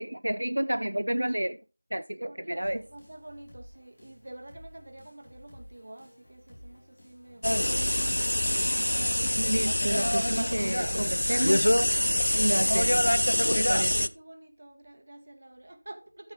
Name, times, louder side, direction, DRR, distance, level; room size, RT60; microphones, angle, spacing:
voice 1, 0.0-1.6 1.9-2.8 9.4-11.7 12.3-13.1 13.5-14.1, right 1 dB, 85° right, 0.5 m, -30 dB
voice 2, 2.1-8.8 10.7-11.5 13.4-16.3, right 1 dB, 50° right, 2.0 m, -49 dB
sound 1, 2.6-12.1, equal, 40° left, 5.3 m, -53 dB
sound 2, 7.4-14.1, left 1 dB, 80° left, 0.7 m, -25 dB
13.5 x 7.2 x 2.9 m
figure-of-eight pair, 175°, 0 cm